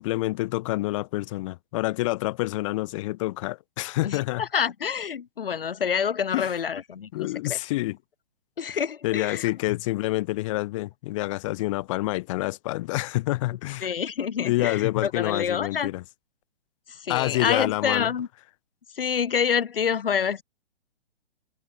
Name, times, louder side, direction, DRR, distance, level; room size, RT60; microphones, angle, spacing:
voice 1, 0.0-4.4 6.3-6.5 7.1-8.0 9.0-13.9 14.4-16.0 17.1-18.1, left 19 dB, 30° left, 1.4 m, -27 dB
voice 2, 4.0-7.6 8.6-9.5 13.8-15.9 16.9-18.3 18.9-20.4, left 7 dB, 60° left, 2.3 m, -27 dB
figure-of-eight pair, 125°, 32 cm